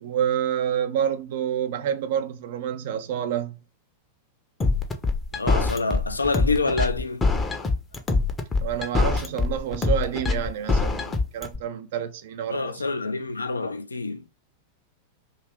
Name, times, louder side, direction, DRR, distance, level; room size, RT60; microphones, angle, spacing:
voice 1, 0.0-3.6 8.6-12.8, right 9 dB, 55° right, 0.3 m, -28 dB
sound 1, 4.6-11.6, left 3 dB, 15° left, 0.5 m, -24 dB
voice 2, 5.3-7.2 12.5-14.3, left 3 dB, 80° left, 0.3 m, -27 dB
2.7 x 2.4 x 3.3 m
figure-of-eight pair, 90°, 0 cm